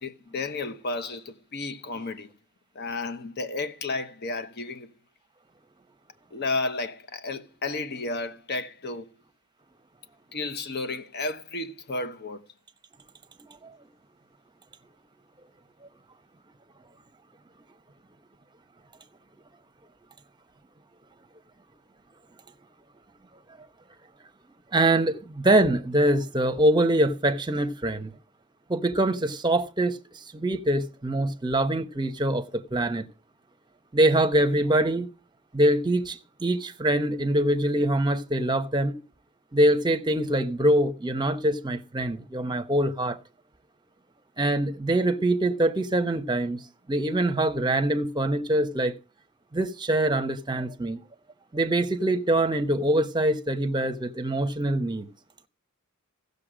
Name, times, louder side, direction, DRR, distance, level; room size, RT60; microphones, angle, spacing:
voice 1, 0.0-2.3 2.7-4.9 6.3-9.1 10.3-12.4, left 3 dB, 45° left, 1.0 m, -32 dB
voice 2, 24.7-28.1 28.7-30.0 30.3-33.0 33.9-35.1 35.5-39.0 39.5-43.2 44.4-46.6 46.9-48.9 49.5-51.0 51.5-55.1, right 1 dB, 20° right, 0.8 m, -24 dB
15.5 x 6.7 x 5.0 m
head